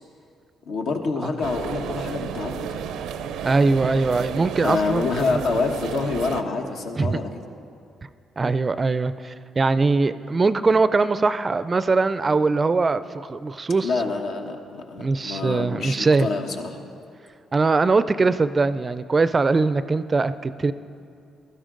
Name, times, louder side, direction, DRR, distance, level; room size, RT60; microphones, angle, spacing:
voice 1, 0.7-2.8 4.6-7.3 13.8-16.8, left 4 dB, 75° left, 3 dB, 1.1 m, -27 dB
sound 1, 1.4-6.4, right 7 dB, 90° right, 0.5 m, -32 dB
voice 2, 3.4-5.4 7.0-7.2 8.4-13.9 15.0-16.3 17.5-20.7, right 3 dB, 30° right, 14 dB, 0.4 m, -21 dB
15.5 x 12.5 x 3.8 m, 2.4 s
cardioid pair, 90°, 0 cm